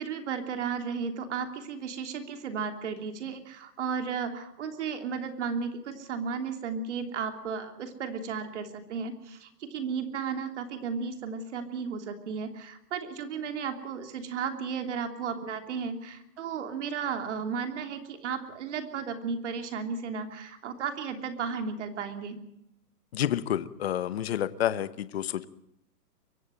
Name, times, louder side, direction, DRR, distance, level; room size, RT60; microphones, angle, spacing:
voice 1, 0.0-22.4, right 6 dB, 45° right, 6 dB, 3.1 m, -34 dB
voice 2, 23.1-25.5, left 11 dB, 40° left, 15 dB, 1.0 m, -29 dB
23.5 x 16.5 x 7.7 m, 0.79 s
hypercardioid pair, 175°, 48 cm